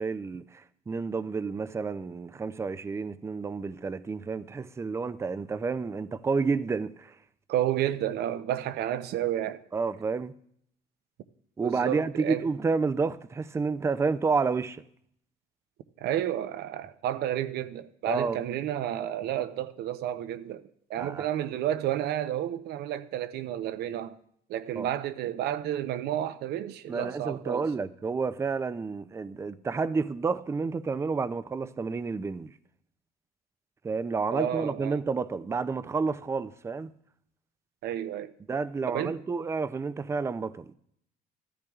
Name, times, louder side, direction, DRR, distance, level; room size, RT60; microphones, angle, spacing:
voice 1, 0.0-7.1 9.7-10.3 11.6-14.8 18.1-18.4 21.0-21.3 24.8-24.9 26.9-32.5 33.8-36.9 38.5-40.7, right 4 dB, 15° right, 0.4 m, -30 dB
voice 2, 7.5-9.6 11.6-12.4 16.0-24.2 24.5-27.7 34.3-34.9 37.8-38.3 38.9-39.2, right 11 dB, 75° right, 0.7 m, -31 dB
14.5 x 13.5 x 2.4 m
cardioid pair, 110°, 17 cm